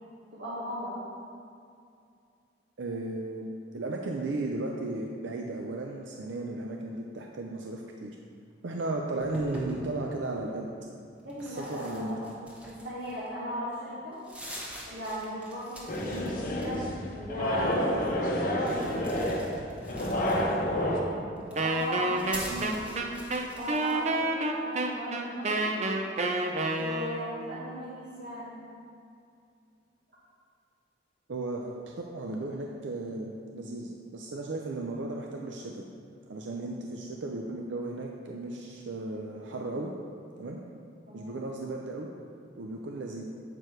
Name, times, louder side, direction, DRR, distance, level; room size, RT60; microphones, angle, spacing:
voice 1, 0.3-1.0 11.2-12.2 12.6-14.2 14.9-19.0 19.9-21.0 21.5-22.9 23.5-25.7 26.8-28.6 36.6-36.8 41.1-41.4, equal, 65° right, -9 dB, 1.5 m, -38 dB
voice 2, 2.8-3.5 3.7-8.1 8.6-10.7 11.4-12.3 22.5-22.7 31.3-35.9 36.3-39.9 40.4-40.6 41.1-42.1 42.6-43.2, right 2 dB, 90° right, 1 dB, 0.5 m, -35 dB
sound 1, 9.2-9.9 11.3-13.3 13.7-13.8 14.1-16.3 16.5-17.1 18.6-20.7 21.4-24.0, equal, 5° right, 1.0 m, -44 dB
sound 2, 15.9-21.0, equal, 50° left, 0.9 m, -29 dB
Wind instrument woodwind instrument, 21.6-27.4, right 2 dB, 40° right, 0.5 m, -29 dB
7.8 x 4.7 x 4.5 m, 2.4 s
head